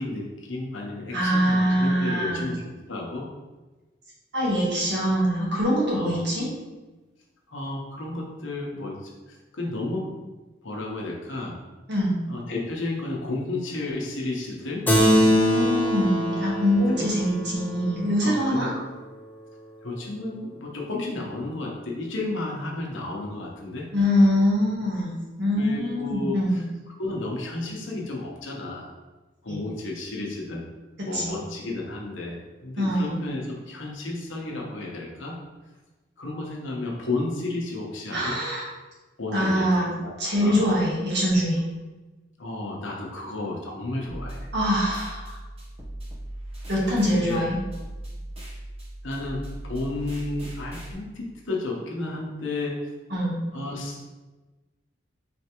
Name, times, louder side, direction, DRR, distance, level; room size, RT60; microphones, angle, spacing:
voice 1, 0.0-2.6 2.9-3.3 5.9-6.2 7.5-10.1 10.6-11.5 12.3-14.8 16.9-17.0 18.2-18.7 19.8-23.9 25.6-28.9 29.4-30.6 31.0-35.4 36.2-38.4 39.2-39.7 40.0-40.7 42.4-44.5 47.0-47.4 49.0-52.8 53.5-54.1, left 2 dB, 70° left, -1 dB, 0.9 m, -32 dB
voice 2, 1.1-2.5 4.3-6.5 11.9-12.2 15.0-18.7 23.9-26.6 29.5-29.6 31.1-31.3 32.8-33.2 38.1-38.6 39.3-39.9 40.2-41.6 44.5-45.4 46.7-47.6 53.1-53.4, equal, 60° right, -5 dB, 1.4 m, -23 dB
Keyboard (musical), 14.9-19.7, equal, 10° left, 0.4 m, -26 dB
sound 1, 44.1-50.9, right 1 dB, 30° right, 0.9 m, -38 dB
4.3 x 3.3 x 2.9 m, 1.2 s
head